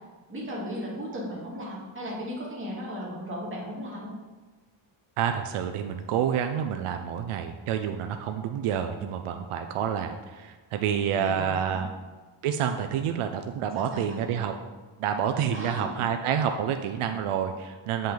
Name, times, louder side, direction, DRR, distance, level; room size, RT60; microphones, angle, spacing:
voice 1, 0.3-4.1 11.1-11.8 13.8-14.2 15.5-15.9, equal, 25° right, -6 dB, 2.3 m, -36 dB
voice 2, 5.2-11.9 12.4-14.5 15.0-18.1, right 8 dB, 85° right, 6 dB, 0.6 m, -28 dB
8.6 x 5.4 x 3.9 m, 1.3 s
wide cardioid pair, 150°, 49 cm